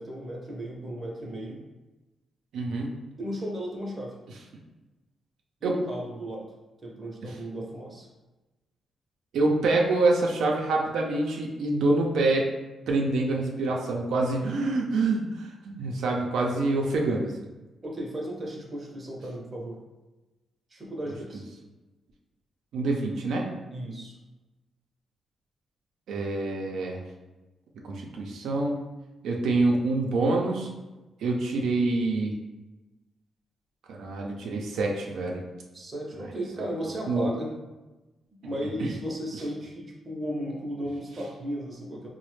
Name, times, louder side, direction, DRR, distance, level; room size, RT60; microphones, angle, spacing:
voice 1, 0.0-1.6 3.2-4.2 5.6-6.5 6.8-8.1 17.8-19.8 20.7-21.4 23.7-24.1 35.7-37.5 38.4-42.1, equal, 25° right, -1 dB, 0.6 m, -35 dB
voice 2, 2.5-2.9 5.6-5.7 9.3-12.5 12.9-17.3 22.7-23.5 26.1-27.0 27.8-28.8 29.2-30.7 31.2-32.3 33.9-35.4 37.1-37.3 38.8-38.9, right 2 dB, 85° right, 0 dB, 0.5 m, -26 dB
4.0 x 2.1 x 3.1 m, 1.1 s
cardioid pair, 140°, 0 cm